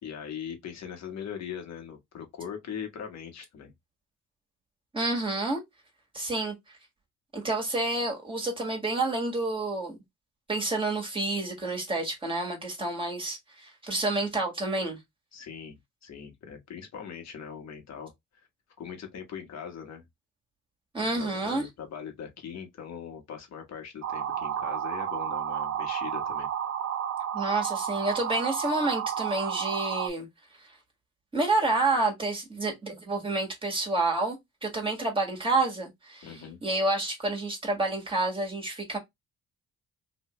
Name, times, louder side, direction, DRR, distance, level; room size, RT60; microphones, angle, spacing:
voice 1, 0.0-3.7 15.3-18.1 18.8-20.0 21.0-26.5 36.2-36.6, left 7 dB, 60° left, 1.3 m, -40 dB
voice 2, 4.9-5.6 6.1-6.5 7.3-9.9 10.5-15.0 20.9-21.7 27.3-30.3 31.3-34.4 34.6-39.0, right 2 dB, 15° right, 1.7 m, -29 dB
sound 1, 24.0-30.1, right 9 dB, 55° right, 0.6 m, -31 dB
3.0 x 2.6 x 3.1 m
cardioid pair, 90°, 30 cm